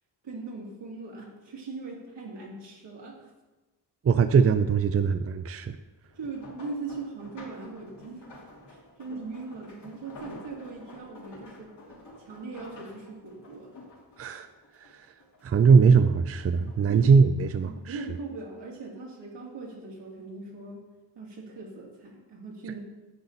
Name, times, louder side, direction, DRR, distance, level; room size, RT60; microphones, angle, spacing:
voice 1, 0.2-3.3 6.1-8.3 8.7-11.7 12.2-13.7 16.9-17.2 17.7-20.9 21.1-22.8, right 3 dB, 85° right, -3 dB, 2.7 m, -40 dB
voice 2, 4.0-5.8 14.2-14.5 14.8-15.1 15.4-18.0, right 5 dB, 35° right, 10 dB, 0.5 m, -21 dB
sound 1, 6.1-15.7 16.0-17.0 17.4-18.7 19.5-19.8 20.2-20.3, left 1 dB, 75° left, 3.2 m, -49 dB
9.9 x 8.6 x 4.0 m, 1.1 s
wide cardioid pair, 110°, 41 cm